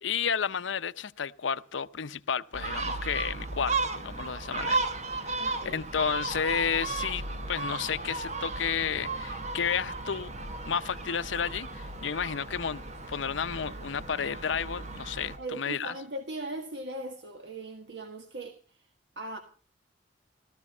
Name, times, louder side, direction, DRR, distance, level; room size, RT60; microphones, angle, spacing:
voice 1, 0.0-4.9 5.2-7.2 7.5-10.3 10.7-15.9, left 7 dB, 90° left, 0.7 m, -32 dB
Gull seagull, 2.5-15.4, right 3 dB, 40° right, 1.2 m, -35 dB
voice 2, 5.4-5.8 15.4-18.9 19.2-19.4, right 2 dB, 70° right, 1.6 m, -39 dB
16.0 x 13.5 x 5.5 m
head